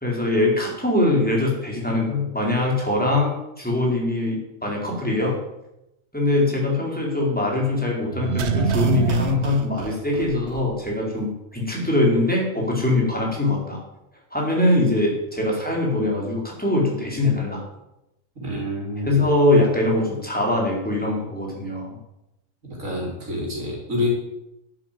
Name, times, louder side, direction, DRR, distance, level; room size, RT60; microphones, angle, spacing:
voice 1, 0.0-5.4 6.1-13.8 14.3-17.6 19.1-22.0, left 2 dB, 5° left, -2 dB, 4.2 m, -22 dB
sound 1, 8.1-10.9 11.2-11.3, right 6 dB, 60° right, 1.1 m, -25 dB
voice 2, 18.4-19.3 22.6-24.1, left 1 dB, 85° right, -3 dB, 4.1 m, -28 dB
11.0 x 8.8 x 7.7 m, 0.89 s
omnidirectional pair, 1.3 m